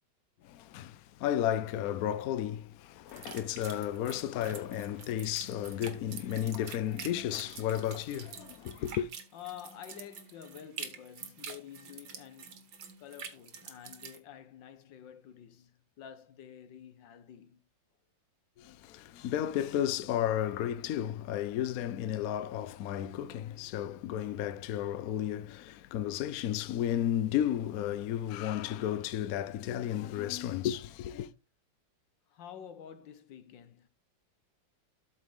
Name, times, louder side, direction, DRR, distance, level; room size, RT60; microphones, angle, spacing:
voice 1, 0.4-9.1 18.6-31.3, left 11 dB, 65° left, 0.9 m, -33 dB
sound 1, 3.1-14.2, right 6 dB, 80° right, 2.0 m, -47 dB
voice 2, 9.3-12.7 13.0-17.6 32.3-33.9, left 9 dB, 85° left, 1.6 m, -49 dB
13.0 x 4.6 x 3.5 m
omnidirectional pair, 2.0 m